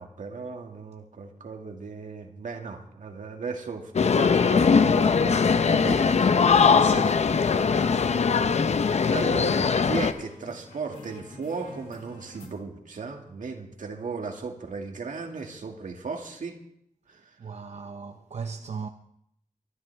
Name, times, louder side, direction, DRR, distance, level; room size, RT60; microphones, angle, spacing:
voice 1, 0.0-6.9 9.1-16.6 17.1-17.4, right 4 dB, 75° right, 2.1 m, -36 dB
sound 1, 4.0-10.1, left 5 dB, 55° left, 0.7 m, -21 dB
sound 2, 6.4-12.5, left 2 dB, 85° left, 2.8 m, -45 dB
voice 2, 6.8-7.2 17.4-18.9, right 5 dB, 55° right, 0.7 m, -36 dB
23.0 x 12.5 x 3.5 m
wide cardioid pair, 120°, 13 cm